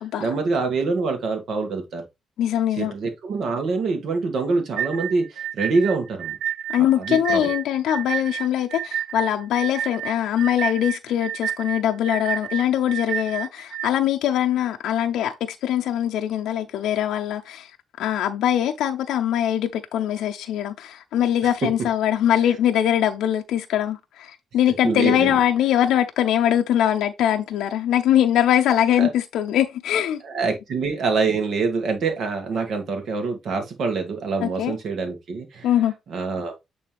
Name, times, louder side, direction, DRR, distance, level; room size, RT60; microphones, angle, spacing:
voice 1, 0.2-2.0 2.8-6.3 7.0-7.5 24.8-25.4 29.0-29.1 30.2-35.7 36.1-36.5, right 4 dB, 65° right, 2.0 m, -25 dB
voice 2, 2.4-2.9 6.7-17.7 18.0-30.2 34.4-34.8 35.6-35.9, left 10 dB, 85° left, 0.6 m, -22 dB
sound 1, 4.8-13.9, right 10 dB, 85° right, 0.4 m, -30 dB
8.4 x 3.4 x 3.4 m
cardioid pair, 90°, 0 cm